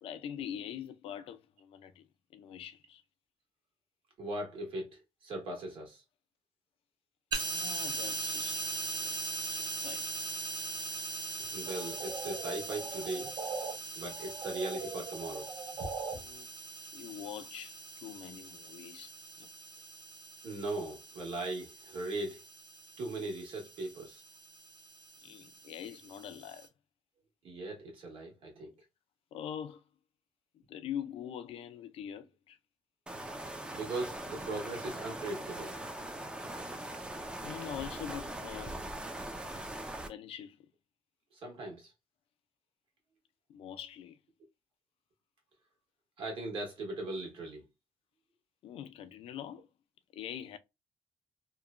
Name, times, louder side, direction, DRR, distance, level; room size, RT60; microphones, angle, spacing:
voice 1, 0.0-3.0 7.5-8.7 8.9-9.2 9.5-10.1 16.1-16.5 16.9-19.1 19.4-19.5 25.2-26.7 29.3-29.9 30.7-32.6 37.4-38.8 40.0-40.7 43.5-44.2 48.6-49.7 50.1-50.6, left 9 dB, 70° left, 0.4 m, -44 dB
voice 2, 4.2-6.0 11.5-13.3 13.9-15.5 15.8-16.2 20.4-22.4 23.0-24.2 27.4-28.7 33.7-35.8 41.3-41.9 46.2-47.6, right 2 dB, 60° right, 1.4 m, -39 dB
sound 1, 7.3-26.7, right 3 dB, 45° right, 0.6 m, -41 dB
sound 2, 11.7-13.7 14.1-16.1, right 4 dB, 90° right, 1.7 m, -41 dB
sound 3, 33.1-40.1, right 1 dB, 10° right, 0.4 m, -41 dB
2.9 x 2.2 x 2.4 m
cardioid pair, 140°, 10 cm